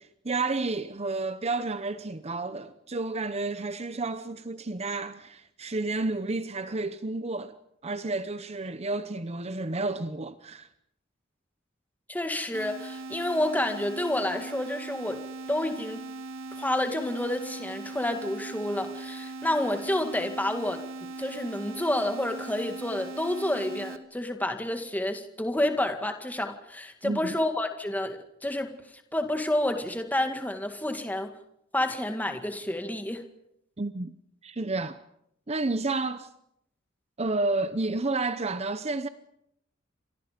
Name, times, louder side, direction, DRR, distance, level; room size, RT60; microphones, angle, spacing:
voice 1, 0.0-7.6 7.8-10.7 27.0-27.3 33.8-34.1 34.4-35.0 35.5-36.3 37.2-39.1, right 3 dB, 35° right, 0.8 m, -31 dB
voice 2, 12.1-16.0 16.6-20.8 21.2-28.7 29.1-31.3 31.7-33.2, left 1 dB, 10° left, 2.0 m, -29 dB
sound 1, 12.5-24.0, right 3 dB, 90° right, 2.1 m, -40 dB
29.5 x 25.5 x 5.2 m
head